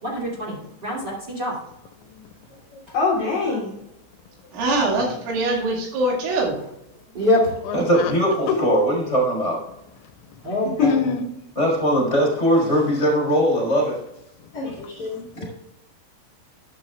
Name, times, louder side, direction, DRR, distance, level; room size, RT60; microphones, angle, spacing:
voice 1, 0.0-1.5 2.9-3.0 7.1-7.6 10.4-11.1, left 1 dB, 30° right, -4 dB, 2.4 m, -24 dB
voice 2, 2.0-2.4 7.7-8.2 8.5-8.6 10.0-10.5 10.8-11.2 14.4-15.2, left 8 dB, 80° left, 6 dB, 2.9 m, -28 dB
voice 3, 2.7-3.8 10.8-10.9 14.5-15.5, left 4 dB, 55° left, -4 dB, 2.1 m, -25 dB
voice 4, 4.5-6.6, right 2 dB, 85° right, -1 dB, 4.8 m, -23 dB
voice 5, 7.7-9.6 11.6-14.0, equal, 15° left, -3 dB, 3.6 m, -20 dB
12.0 x 11.0 x 2.4 m, 0.82 s
omnidirectional pair, 5.5 m